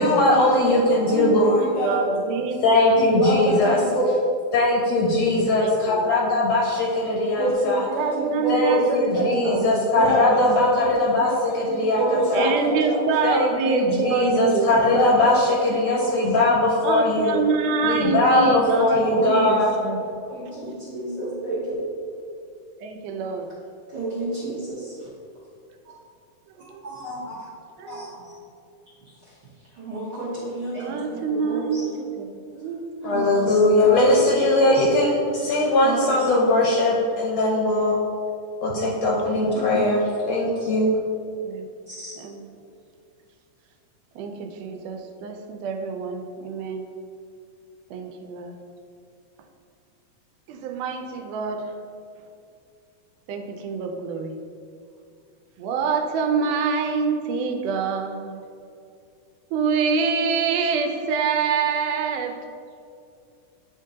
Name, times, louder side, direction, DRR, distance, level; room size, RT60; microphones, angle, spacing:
voice 1, 0.0-1.7 2.6-3.8 4.5-7.8 8.5-12.5 13.2-17.3 17.8-19.7 33.0-38.0 38.6-40.9, left 2 dB, 75° left, -3 dB, 1.5 m, -20 dB
voice 2, 0.8-2.0 3.0-4.1 7.4-9.6 9.9-13.0 14.7-15.4 15.7-16.3 18.7-19.8 20.3-21.6 23.9-24.9 26.8-27.3 27.9-28.1 29.8-31.9 33.1-33.6 34.5-34.8 35.8-36.4 39.4-40.0 41.9-42.1, right 1 dB, 60° right, -9 dB, 1.1 m, -27 dB
voice 3, 1.8-3.0 5.6-6.1 7.9-9.9 12.3-14.7 16.8-20.0 22.8-23.5 26.6-26.8 27.8-28.1 30.8-32.3 32.5-33.3 38.8-38.9 41.4-41.7 42.2-42.5 44.2-46.9 47.9-48.5 50.5-51.7 53.3-54.4 55.6-58.4 59.5-62.3, right 5 dB, 85° right, 4 dB, 2.1 m, -26 dB
9.4 x 3.7 x 2.8 m, 2.5 s
omnidirectional pair, 3.6 m